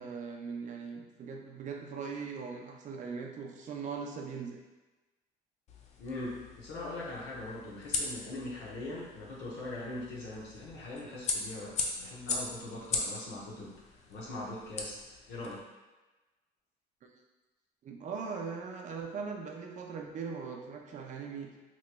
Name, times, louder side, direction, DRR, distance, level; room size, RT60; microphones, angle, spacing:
voice 1, 0.0-4.6 17.8-21.6, right 5 dB, 45° right, 2 dB, 0.5 m, -40 dB
sound 1, 5.7-15.6, left 3 dB, 40° left, 0.4 m, -39 dB
voice 2, 6.0-13.7 14.1-15.6, left 2 dB, 85° left, -6 dB, 0.8 m, -41 dB
2.9 x 2.9 x 2.2 m, 1.2 s
cardioid pair, 110°, 17 cm